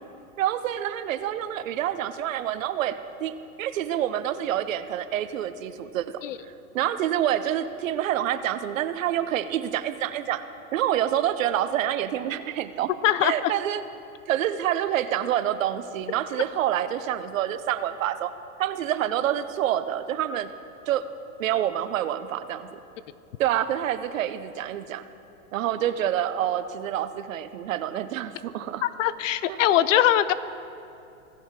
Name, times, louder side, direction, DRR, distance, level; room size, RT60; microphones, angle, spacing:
voice 1, 0.4-6.2 6.7-10.4 10.7-12.9 13.2-13.8 14.3-18.3 18.6-20.5 20.9-21.0 21.4-22.8 23.4-25.0 25.5-28.8 29.5-29.6, right 11 dB, 65° right, 12 dB, 0.7 m, -27 dB
voice 2, 13.0-13.5 28.8-30.3, left 12 dB, 60° left, 15 dB, 0.6 m, -22 dB
17.0 x 6.1 x 3.6 m, 2.6 s
hypercardioid pair, 125°, 43 cm